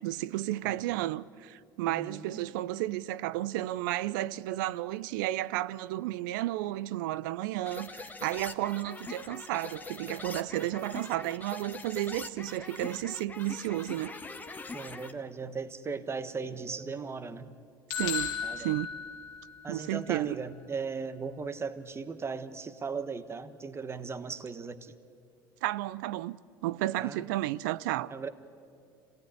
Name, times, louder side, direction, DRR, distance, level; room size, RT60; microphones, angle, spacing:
voice 1, 0.0-14.1 17.9-18.9 19.7-20.4 25.6-28.1, right 15 dB, 75° right, 0.6 m, -32 dB
voice 2, 1.9-2.4 14.7-17.5 18.4-18.7 19.6-24.9 27.0-27.2 28.1-28.3, right 5 dB, 25° right, 1.3 m, -37 dB
sound 1, 7.7-15.1, left 3 dB, 15° left, 1.5 m, -43 dB
sound 2, 17.9-19.8, left 8 dB, 75° left, 1.5 m, -35 dB
26.0 x 17.5 x 10.0 m
hypercardioid pair, 80°, 11 cm